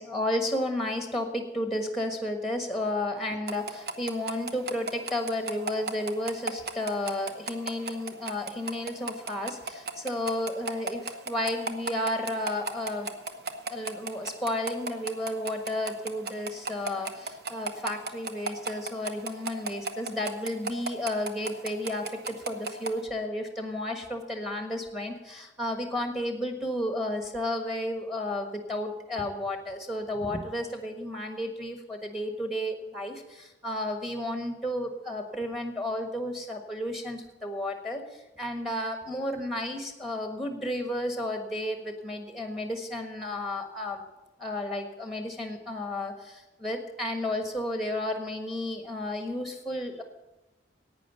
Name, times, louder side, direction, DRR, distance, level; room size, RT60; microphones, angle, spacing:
voice 1, 0.0-13.1 13.7-44.1 44.4-50.0, left 1 dB, ahead, 5 dB, 1.3 m, -32 dB
sound 1, 3.5-22.9, right 3 dB, 55° right, 1.0 m, -34 dB
11.0 x 9.0 x 8.1 m, 1.0 s
head